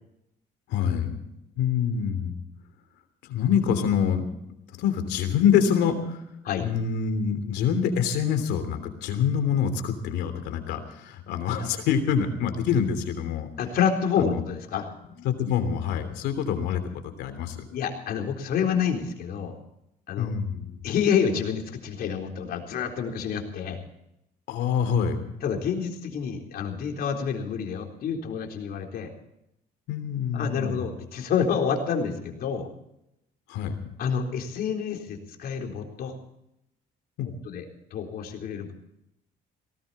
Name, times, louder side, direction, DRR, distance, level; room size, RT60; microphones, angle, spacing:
voice 1, 0.7-1.2 1.6-2.3 3.2-4.2 4.8-6.2 6.6-13.5 14.2-14.4 15.0-17.6 20.2-20.8 24.5-25.2 29.9-30.9 33.5-33.7 37.2-37.3, left 7 dB, 85° left, 8 dB, 3.1 m, -26 dB
voice 2, 13.6-14.9 17.7-19.5 20.1-20.3 20.8-23.8 25.4-29.1 30.3-32.7 34.0-36.1 37.4-37.6 37.9-38.7, left 7 dB, 65° left, 2 dB, 4.0 m, -28 dB
19.0 x 18.0 x 4.3 m, 0.82 s
cardioid pair, 110°, 17 cm